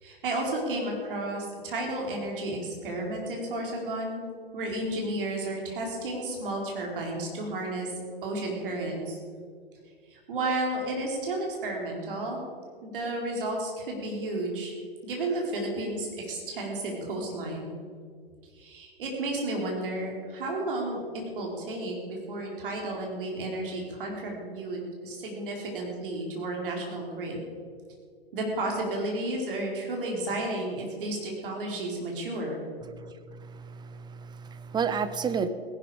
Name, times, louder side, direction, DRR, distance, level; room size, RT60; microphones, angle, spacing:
voice 1, 0.0-4.2 4.5-7.9 8.2-9.2 10.1-12.4 12.8-14.7 15.0-17.7 18.6-21.0 21.3-27.4 28.3-32.6, right 2 dB, 60° right, 0 dB, 4.4 m, -32 dB
voice 2, 32.9-35.5, right 6 dB, 15° right, 11 dB, 0.8 m, -32 dB
17.5 x 11.0 x 5.1 m, 2.1 s
figure-of-eight pair, 105°, 30 cm